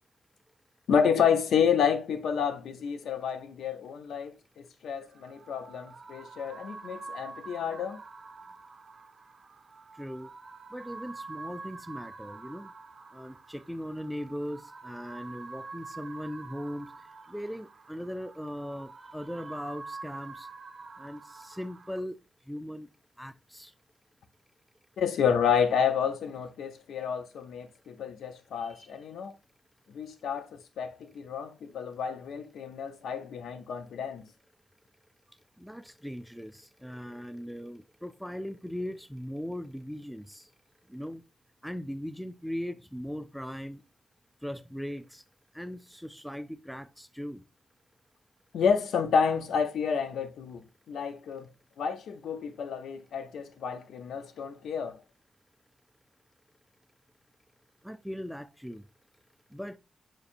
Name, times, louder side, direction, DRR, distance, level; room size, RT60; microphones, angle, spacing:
voice 1, 0.9-8.0 25.0-29.3 29.9-34.2 48.5-50.6 50.9-51.5 51.8-55.0, left 7 dB, 85° left, 0.5 m, -29 dB
sound 1, 5.0-22.0, right 3 dB, 55° right, 0.6 m, -47 dB
voice 2, 9.9-10.3 10.7-12.7 13.1-16.9 17.3-20.5 21.0-22.2 22.5-22.9 23.2-23.7 28.6-29.0 35.6-40.5 40.9-41.2 41.6-43.8 44.4-45.2 45.5-47.4 57.8-58.9 59.5-59.8, equal, ahead, 0.4 m, -39 dB
5.2 x 2.6 x 2.5 m
supercardioid pair, 50°, 0 cm